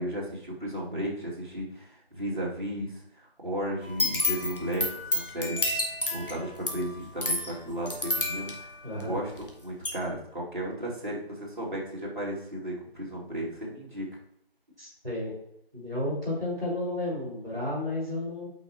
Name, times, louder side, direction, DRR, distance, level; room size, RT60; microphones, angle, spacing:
voice 1, 0.0-5.7 6.1-8.7 9.0-14.1, right 1 dB, 55° right, -5 dB, 2.7 m, -34 dB
sound 1, 3.8-9.5 9.8-9.9, left 2 dB, 60° left, 1.7 m, -30 dB
voice 2, 8.8-9.2 14.8-15.3 15.7-18.5, left 1 dB, 5° right, -21 dB, 2.5 m, -32 dB
8.5 x 5.5 x 3.0 m, 0.74 s
figure-of-eight pair, 175°, 30 cm